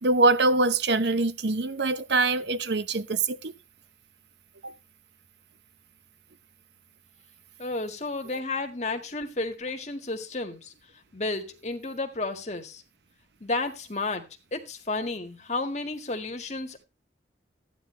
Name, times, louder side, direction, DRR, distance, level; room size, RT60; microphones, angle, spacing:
voice 1, 0.0-3.5 4.6-4.7, right 3 dB, 70° right, 0.9 m, -24 dB
voice 2, 7.6-10.7 11.1-12.8 13.4-14.3 14.5-16.8, left 2 dB, 40° left, 1.8 m, -32 dB
14.5 x 9.9 x 3.3 m
head